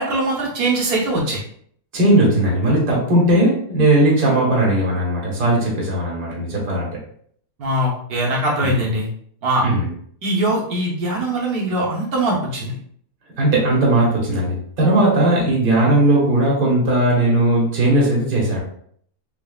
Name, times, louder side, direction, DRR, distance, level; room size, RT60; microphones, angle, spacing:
voice 1, 0.0-1.4 7.6-9.1 9.4-9.6 10.2-12.7, right 1 dB, 80° right, -3 dB, 1.4 m, -21 dB
voice 2, 1.9-6.9 8.6-8.8 9.6-9.9 13.4-18.6, right 1 dB, 35° right, -4 dB, 1.4 m, -17 dB
4.0 x 3.5 x 2.3 m, 0.63 s
omnidirectional pair, 1.6 m